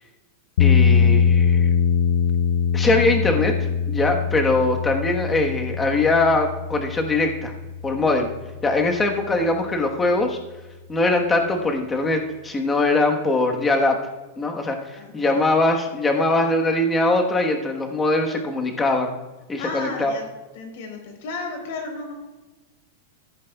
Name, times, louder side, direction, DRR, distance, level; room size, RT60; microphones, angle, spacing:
sound 1, 0.6-8.7, left 7 dB, 75° left, 0.4 m, -22 dB
voice 1, 0.6-1.7 2.7-3.5 3.9-7.5 7.8-8.3 8.6-10.4 10.9-14.0 14.4-19.2 19.5-20.1, left 2 dB, 10° left, 2 dB, 1.2 m, -21 dB
voice 2, 15.0-15.3 19.6-20.2 20.5-22.1, left 3 dB, 60° left, 3 dB, 3.7 m, -33 dB
14.5 x 9.3 x 2.3 m, 1.1 s
supercardioid pair, 160°, 0 cm